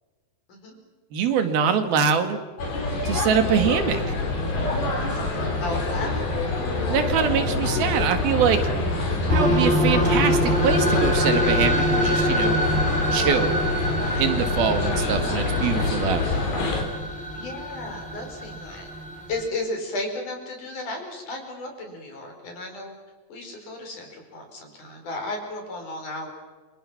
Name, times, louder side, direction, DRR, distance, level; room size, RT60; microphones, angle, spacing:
voice 1, 1.1-2.4 3.1-4.2 6.9-8.6 9.3-12.6 13.1-13.5 14.2-16.3, right 7 dB, 90° right, 8 dB, 3.9 m, -23 dB
sound 1, 2.6-16.8, left 3 dB, 90° left, 5.8 m, -25 dB
voice 2, 5.6-6.3 9.9-10.1 14.0-14.2 17.3-18.9 19.3-22.9 23.3-26.3, left 2 dB, 60° left, 3 dB, 6.4 m, -34 dB
sound 2, 9.3-19.4, equal, ahead, 3.1 m, -26 dB
29.0 x 26.5 x 5.9 m, 1.3 s
omnidirectional pair, 4.2 m